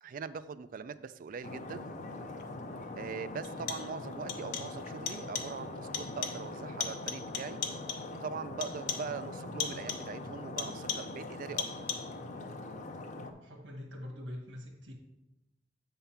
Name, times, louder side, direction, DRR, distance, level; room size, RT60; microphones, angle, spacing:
voice 1, 0.0-1.9 3.0-7.6 8.1-11.9, right 5 dB, 45° right, 14 dB, 0.3 m, -42 dB
Stream, 1.4-13.3, left 2 dB, 40° left, 0.6 m, -42 dB
sound 1, 2.4-2.5 3.4-4.0 4.3-4.8 5.1-5.6 5.9-6.5 6.8-8.2 8.6-9.2 9.6-10.2 10.6-11.2 11.6-12.2, left 7 dB, 65° left, 0.9 m, -38 dB
voice 2, 13.1-14.9, left 1 dB, 75° right, 0 dB, 1.6 m, -44 dB
8.0 x 3.7 x 5.7 m, 0.95 s
head